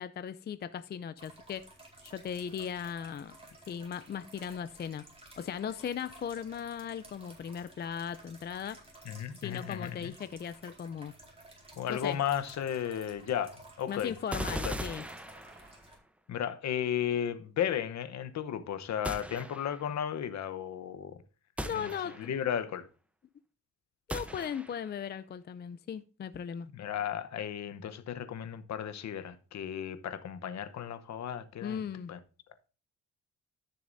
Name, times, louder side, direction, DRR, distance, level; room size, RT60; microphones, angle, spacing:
voice 1, 0.0-1.6 2.0-3.4 3.7-5.0 5.4-8.8 9.4-11.1 11.9-12.2 13.9-15.0 21.6-22.2 24.1-26.7 31.6-32.1, left 8 dB, 35° left, 0.5 m, -38 dB
sound 1, 1.2-16.0, right 2 dB, 20° right, 4.4 m, -55 dB
voice 2, 9.0-10.1 11.8-14.2 14.6-14.7 16.3-21.2 21.7-21.9 22.2-22.9 26.6-31.8 32.1-32.2, left 9 dB, 65° left, 1.0 m, -34 dB
sound 2, 14.3-15.9 19.0-19.9 21.6-22.5 24.1-25.0, equal, 5° right, 0.8 m, -39 dB
14.0 x 6.7 x 2.7 m
cardioid pair, 90°, 30 cm